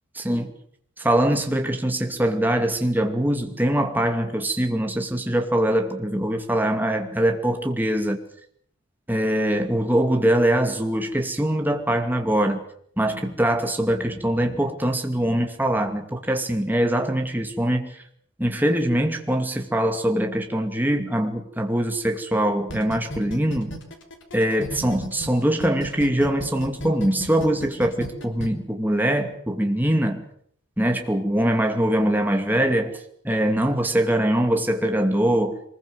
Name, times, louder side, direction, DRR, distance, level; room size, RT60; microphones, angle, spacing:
voice 1, 1.0-8.2 9.1-12.6 13.0-18.0 18.4-23.7 24.3-30.2 30.8-33.0 33.2-35.6, right 1 dB, 10° right, 4 dB, 2.4 m, -23 dB
sound 1, 22.7-25.3 25.6-28.5, equal, 65° left, 3.9 m, -34 dB
23.5 x 21.0 x 7.9 m, 0.65 s
head